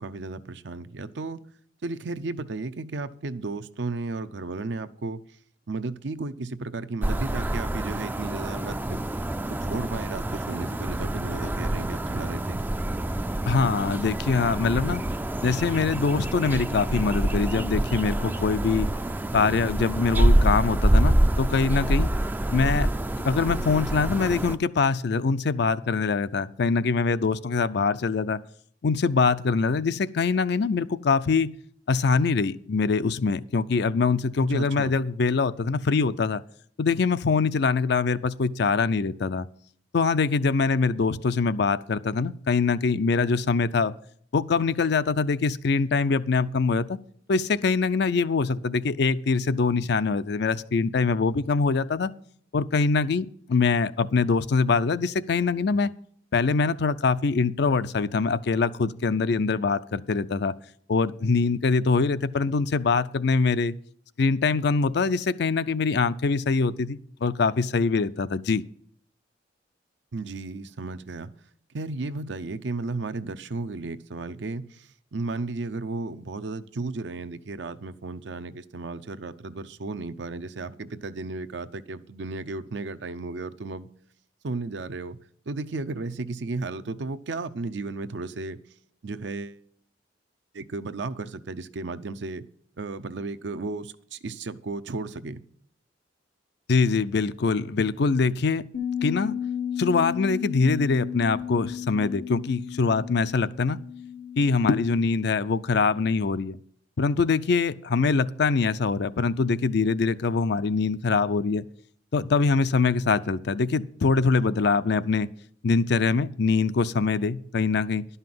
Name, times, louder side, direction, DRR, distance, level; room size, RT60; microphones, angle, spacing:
voice 1, 0.0-1.4 1.8-5.2 5.7-9.0 9.6-12.6 34.5-34.9 70.1-71.3 71.7-83.9 84.4-85.2 85.5-88.6 89.0-89.6 90.5-92.4 92.8-95.4, right 3 dB, 70° right, 12 dB, 0.6 m, -34 dB
sound 1, 7.0-24.6, right 1 dB, 10° right, 0.3 m, -26 dB
voice 2, 13.5-15.0 15.4-18.9 19.3-22.1 22.5-22.9 23.2-28.4 28.8-31.5 31.9-36.4 36.8-39.5 39.9-43.9 44.3-47.0 47.3-52.1 52.5-55.9 56.3-60.5 60.9-63.8 64.2-68.6 96.7-98.6 99.0-99.3 99.8-103.8 104.4-106.6 107.0-111.6 112.1-115.3 115.6-118.1, left 4 dB, 65° left, 14 dB, 0.5 m, -23 dB
Bass guitar, 98.7-105.0, left 8 dB, 85° left, 1.1 m, -33 dB
11.5 x 5.6 x 7.7 m, 0.63 s
head